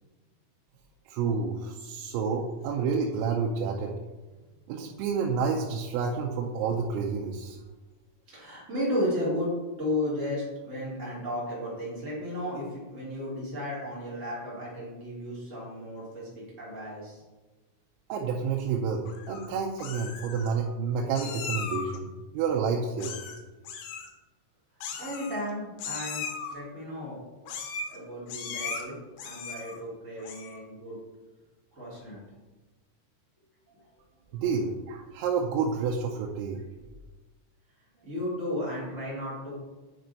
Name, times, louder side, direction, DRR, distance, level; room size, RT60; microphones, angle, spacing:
voice 1, 1.1-3.9 4.7-7.6 18.1-22.1 22.3-23.2 34.3-36.6, right 5 dB, 85° right, 0 dB, 3.2 m, -29 dB
voice 2, 8.3-17.2 25.0-26.2 26.5-27.2 27.9-31.0 31.7-32.2 38.0-39.5, left 1 dB, 60° right, -8 dB, 0.8 m, -34 dB
Meow, 19.1-19.5 19.8-20.5 21.2-22.0 23.0-23.4 23.6-24.1 24.8-25.5 25.8-26.5 27.5-28.0 28.3-28.8 29.2-29.8 30.2-30.6, left 5 dB, 80° left, 3.3 m, -37 dB
9.0 x 5.2 x 4.0 m, 1.2 s
omnidirectional pair, 6.0 m